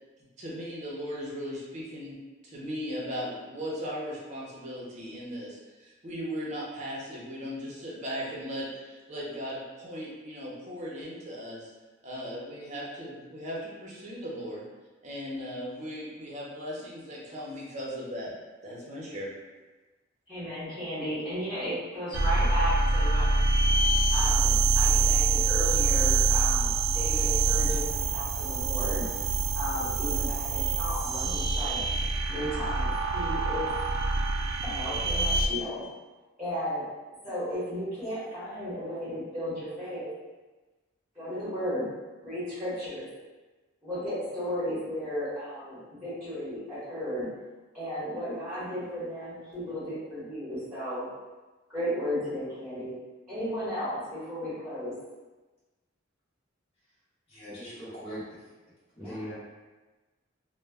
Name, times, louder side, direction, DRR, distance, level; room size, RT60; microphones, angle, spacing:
voice 1, 0.4-2.1 2.4-11.7 12.0-14.6 15.0-18.3 18.6-19.3, equal, 35° right, -5 dB, 0.6 m, -37 dB
voice 2, 20.3-23.3 24.1-29.0 29.5-31.8 32.3-33.7 34.6-35.8 36.4-36.9 37.2-40.1 41.1-41.9 42.2-43.1 43.8-47.3 47.7-51.1 51.7-53.0 53.3-55.0 59.0-59.3, equal, 10° right, -14 dB, 1.0 m, -34 dB
sound 1, 22.1-35.5, right 3 dB, 85° right, 0.3 m, -25 dB
voice 3, 57.3-58.3 59.0-59.3, equal, 30° left, -12 dB, 0.9 m, -40 dB
2.2 x 2.1 x 3.3 m, 1.2 s
head